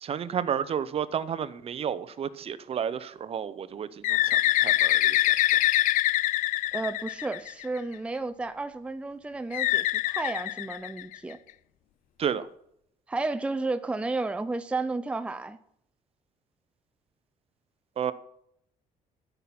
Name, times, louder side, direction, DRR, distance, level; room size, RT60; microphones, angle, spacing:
voice 1, 0.0-5.2 12.2-12.5 18.0-18.1, right 8 dB, 45° right, 15 dB, 0.7 m, -31 dB
Bird, 4.0-7.8 9.5-11.3, left 15 dB, 65° left, 0.4 m, -24 dB
voice 2, 6.7-11.4 13.1-15.6, right 3 dB, 10° right, 10 dB, 0.5 m, -32 dB
13.0 x 5.9 x 8.6 m, 0.73 s
cardioid pair, 135°, 14 cm